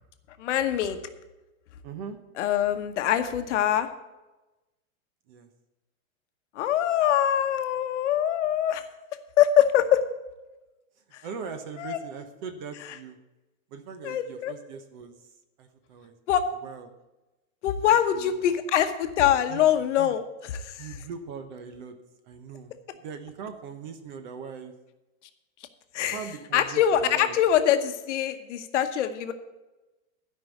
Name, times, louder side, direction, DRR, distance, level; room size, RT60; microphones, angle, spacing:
voice 1, 0.4-1.0 2.4-3.9 6.6-8.8 9.4-10.0 11.8-12.0 14.0-14.5 16.3-16.5 17.6-20.9 25.9-26.2 26.5-29.3, left 10 dB, 60° left, 8 dB, 1.1 m, -23 dB
voice 2, 1.8-2.2 5.3-5.5 11.2-13.2 13.7-15.1 15.6-16.1 16.6-16.9 17.9-18.5 19.5-19.7 20.0-20.2 20.8-21.9 22.3-24.7 26.1-27.4, right 6 dB, 35° right, 8 dB, 0.9 m, -40 dB
12.5 x 5.5 x 8.1 m, 1.0 s
supercardioid pair, 175°, 40 cm